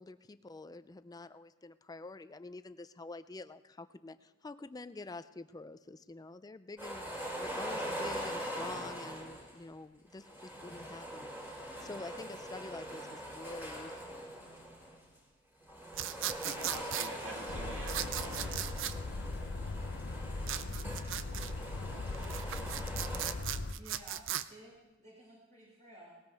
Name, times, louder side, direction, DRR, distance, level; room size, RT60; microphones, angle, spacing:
voice 1, 0.0-14.3, left 3 dB, 20° left, 12 dB, 0.4 m, -47 dB
sound 1, 6.8-9.6 10.2-15.0 15.6-23.3, equal, 10° right, 3.0 m, -42 dB
sound 2, 15.9-17.1 17.9-18.9 20.4-21.5 22.1-24.4, right 11 dB, 65° right, 0.5 m, -37 dB
voice 2, 16.2-18.9, right 2 dB, 85° right, -1 dB, 2.9 m, -47 dB
sound 3, 17.5-23.7, left 2 dB, 60° left, 0.6 m, -39 dB
voice 3, 23.8-26.1, right 1 dB, 40° right, -7 dB, 5.6 m, -55 dB
19.0 x 18.0 x 3.5 m, 1.1 s
head